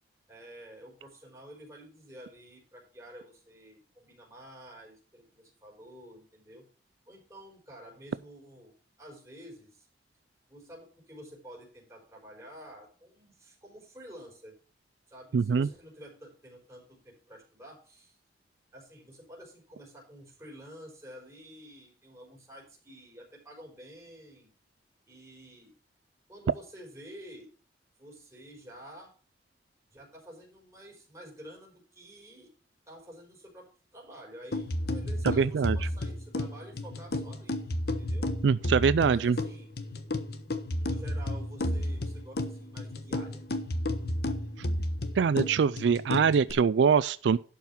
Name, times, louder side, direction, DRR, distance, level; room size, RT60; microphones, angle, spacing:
voice 1, 0.3-6.6 7.1-8.7 9.0-9.9 10.5-14.5 15.1-18.2 18.7-24.5 25.0-25.7 26.3-27.5 28.0-29.1 29.9-32.5 32.9-33.7 33.9-37.6 38.0-38.3 39.0-39.7 40.8-43.4, equal, 15° right, 4.9 m, -50 dB
voice 2, 15.3-15.7 35.2-35.8 38.4-39.4 45.2-47.4, right 6 dB, 80° right, 0.4 m, -23 dB
sound 1, 34.5-46.5, left 1 dB, 60° left, 1.2 m, -32 dB
11.5 x 5.8 x 5.8 m
head